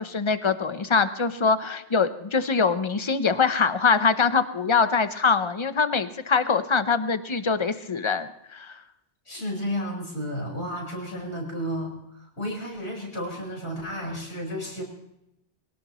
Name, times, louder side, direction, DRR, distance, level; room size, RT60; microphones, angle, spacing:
voice 1, 0.0-8.8, left 5 dB, 30° left, 11 dB, 0.7 m, -23 dB
voice 2, 9.3-11.9 12.4-14.8, equal, 80° left, -1 dB, 4.9 m, -32 dB
23.0 x 17.5 x 3.1 m, 0.84 s
omnidirectional pair, 1.1 m